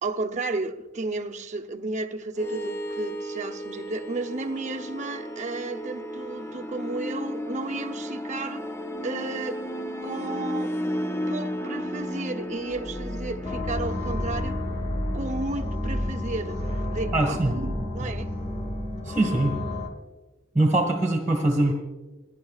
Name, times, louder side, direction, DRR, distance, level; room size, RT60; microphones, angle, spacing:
voice 1, 0.0-8.7 9.0-9.7 10.0-10.7 11.3-14.6 15.1-18.3, right 3 dB, 40° right, 0.7 m, -33 dB
sound 1, 2.4-18.9, equal, 15° left, 0.5 m, -33 dB
sound 2, 13.4-19.9, left 2 dB, 35° left, 1.3 m, -32 dB
voice 2, 17.1-17.8 19.1-19.6 20.5-21.7, right 2 dB, 10° right, 1.4 m, -23 dB
29.5 x 10.5 x 2.4 m
head